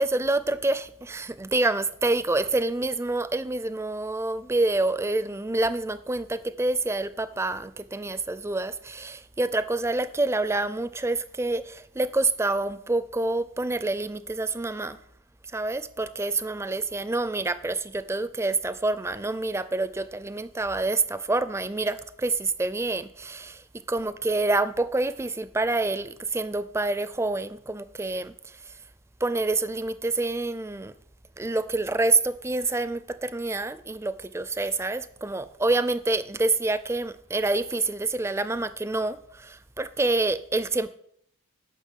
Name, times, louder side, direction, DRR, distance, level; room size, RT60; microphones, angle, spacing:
voice 1, 0.0-15.0 15.5-28.7 29.2-30.9 31.4-40.9, right 2 dB, 10° right, 0.4 m, -27 dB
10.0 x 5.9 x 7.3 m
head